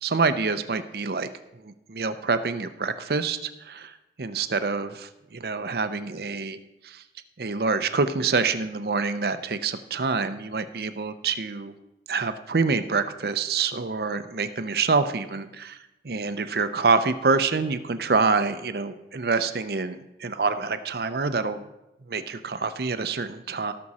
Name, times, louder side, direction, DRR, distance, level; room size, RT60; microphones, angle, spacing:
voice 1, 0.0-1.3 1.6-6.6 6.8-7.0 7.4-11.7 12.1-15.8 16.0-21.6 22.1-23.7, right 4 dB, 60° right, 11 dB, 0.6 m, -26 dB
17.5 x 6.1 x 4.2 m, 0.94 s
head